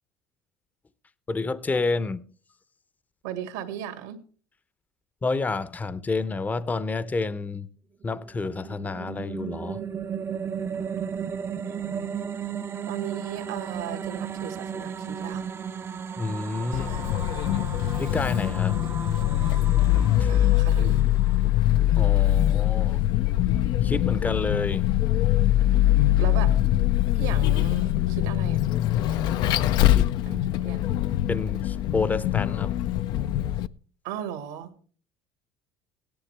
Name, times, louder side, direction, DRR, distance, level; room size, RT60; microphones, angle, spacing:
voice 1, 1.3-2.2 5.2-7.7 8.0-9.8 16.2-16.9 18.0-18.8 20.2-20.3 21.9-23.0 23.8-24.9 29.8-30.4 31.3-32.8, left 3 dB, 20° left, 0.7 m, -29 dB
voice 2, 3.2-4.2 11.6-12.1 12.4-12.5 12.9-15.4 16.7-17.1 20.3-21.0 26.2-26.5 27.1-28.6 29.1-29.2 30.2-30.9 34.0-34.7, right 10 dB, 85° right, 2.0 m, -37 dB
sound 1, 8.1-21.5, right 7 dB, 30° right, 0.5 m, -35 dB
Vehicle, 16.7-33.7, left 13 dB, 65° left, 0.5 m, -23 dB
17.0 x 10.5 x 3.3 m
supercardioid pair, 85°, 8 cm